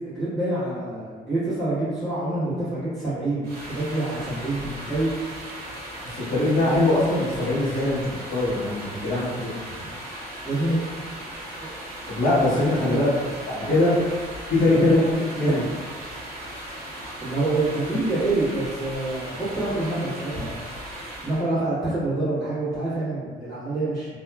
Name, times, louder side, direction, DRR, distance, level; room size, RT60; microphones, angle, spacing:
voice 1, 0.0-5.2 6.7-6.8 10.4-10.8 11.6-11.7 12.9-13.0 13.7-13.9 14.7-15.0 15.4-15.6 17.2-20.6 21.2-24.1, right 2 dB, ahead, -16 dB, 1.3 m, -26 dB
sound 1, 3.4-21.5, right 1 dB, 65° right, 0.7 m, -37 dB
voice 2, 6.1-9.5 12.1-13.1 13.5-13.9 14.5-15.0 15.4-15.6, left 2 dB, 55° left, -9 dB, 1.0 m, -22 dB
2.8 x 2.3 x 2.3 m, 1.5 s
cardioid pair, 110°, 17 cm